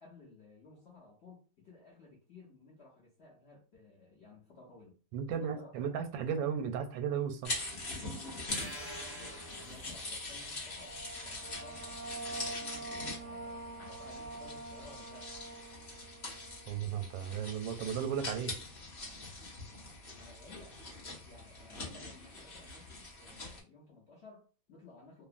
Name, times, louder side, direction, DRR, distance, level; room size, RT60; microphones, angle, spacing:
voice 1, 0.0-5.0 5.3-6.4 9.2-15.3 20.1-20.8 21.2-25.3, left 3 dB, 60° left, 0.6 m, -56 dB
voice 2, 5.1-7.5 16.7-18.6, right 8 dB, 90° right, 1.3 m, -35 dB
sound 1, 7.4-23.6, left 2 dB, 45° left, 1.0 m, -43 dB
sound 2, 8.5-10.4, right 1 dB, ahead, 0.8 m, -47 dB
sound 3, 10.4-17.7, right 3 dB, 70° right, 1.0 m, -46 dB
2.8 x 2.5 x 2.4 m
omnidirectional pair, 2.0 m